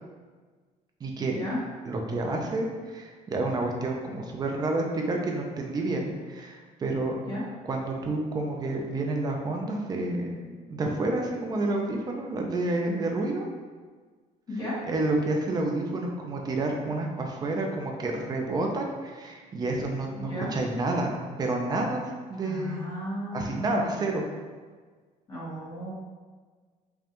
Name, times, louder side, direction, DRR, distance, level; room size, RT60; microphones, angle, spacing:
voice 1, 1.0-1.3 1.8-7.1 7.6-10.4 10.7-13.5 14.9-21.1 21.4-22.0 22.3-22.8 23.3-24.2, right 2 dB, 25° right, 1 dB, 0.5 m, -29 dB
voice 2, 22.4-23.8 25.3-25.9, equal, 25° left, -7 dB, 1.2 m, -34 dB
5.2 x 2.4 x 3.0 m, 1.5 s
cardioid pair, 160°, 15 cm